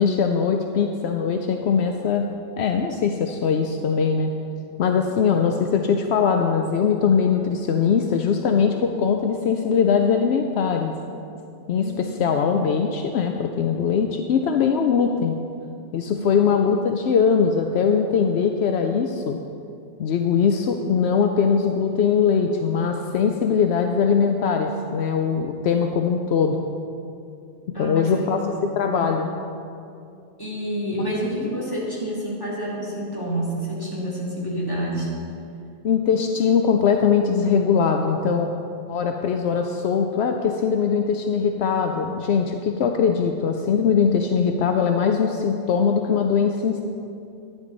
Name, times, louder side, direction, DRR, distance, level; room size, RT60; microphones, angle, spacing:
voice 1, 0.0-2.3 2.6-4.3 4.8-10.9 11.7-15.4 15.9-19.4 20.0-26.6 27.8-28.4 28.7-29.3 35.8-38.5 38.9-46.8, left 6 dB, 75° left, 4 dB, 0.8 m, -21 dB
voice 2, 11.7-12.4 16.1-16.6 27.7-29.0 30.4-35.1, equal, 20° left, -7 dB, 2.8 m, -29 dB
11.0 x 11.0 x 3.9 m, 2.6 s
omnidirectional pair, 1.1 m